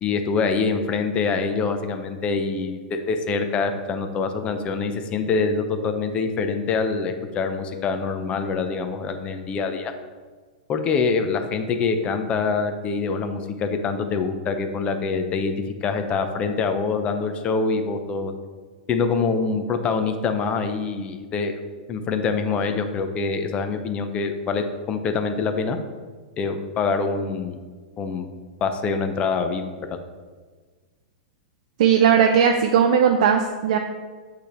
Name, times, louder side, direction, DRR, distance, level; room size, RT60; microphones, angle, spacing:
voice 1, 0.0-9.9 10.7-15.5 15.8-18.3 18.9-21.6 21.9-25.8 26.4-27.6 28.0-28.3 28.6-29.7, left 4 dB, 25° left, 7 dB, 0.7 m, -25 dB
voice 2, 31.8-33.8, right 7 dB, 65° right, 3 dB, 0.6 m, -17 dB
8.0 x 3.4 x 4.4 m, 1.4 s
hypercardioid pair, 130°, 4 cm